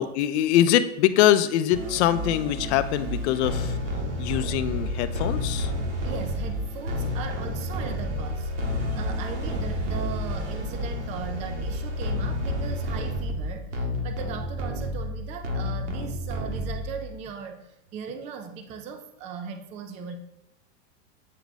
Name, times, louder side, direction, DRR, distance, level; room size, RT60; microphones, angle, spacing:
voice 1, 0.0-3.8 4.2-5.7, left 12 dB, 65° left, 11 dB, 0.6 m, -23 dB
sound 1, 1.7-17.1, left 1 dB, 70° right, 1.6 m, -30 dB
voice 2, 6.0-20.2, right 6 dB, 20° right, 7 dB, 0.3 m, -38 dB
8.3 x 3.4 x 4.0 m, 0.90 s
supercardioid pair, 135°, 37 cm